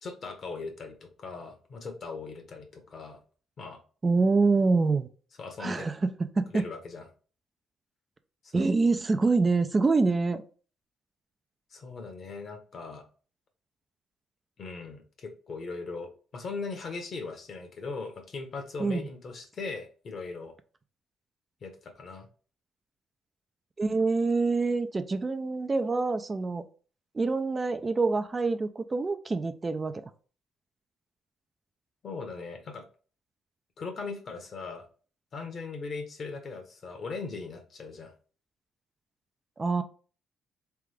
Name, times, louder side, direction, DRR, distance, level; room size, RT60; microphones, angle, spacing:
voice 1, 0.0-3.2 3.6-3.8 5.4-5.9 6.5-7.1 8.4-8.7 11.7-13.0 14.6-20.5 21.6-22.3 32.0-32.9 33.8-34.9 35.3-38.1, left 4 dB, 50° left, 5 dB, 1.2 m, -39 dB
voice 2, 4.0-5.1 5.6-6.0 6.4-6.6 8.5-10.4 18.8-19.1 23.8-26.7 27.1-30.1 39.6-39.8, right 3 dB, 30° right, 9 dB, 0.5 m, -26 dB
3.6 x 3.5 x 3.4 m, 0.38 s
cardioid pair, 90°, 0 cm